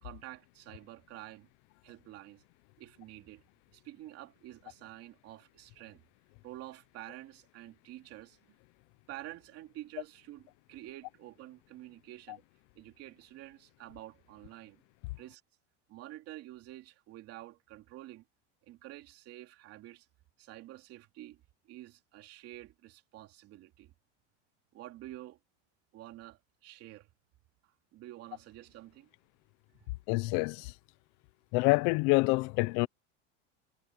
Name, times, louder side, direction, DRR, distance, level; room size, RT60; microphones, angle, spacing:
voice 1, 0.0-1.5 1.8-2.4 2.8-3.4 3.7-6.0 6.4-8.4 9.1-12.4 12.8-14.8 15.2-15.4 15.9-18.2 18.7-20.1 20.4-23.9 24.7-25.4 25.9-27.1 27.6-29.1 29.8-29.9, right 15 dB, 40° right, 3.0 m, -49 dB
voice 2, 30.1-30.7 31.5-32.9, left 24 dB, 55° left, 1.0 m, -27 dB
supercardioid pair, 160°, 36 cm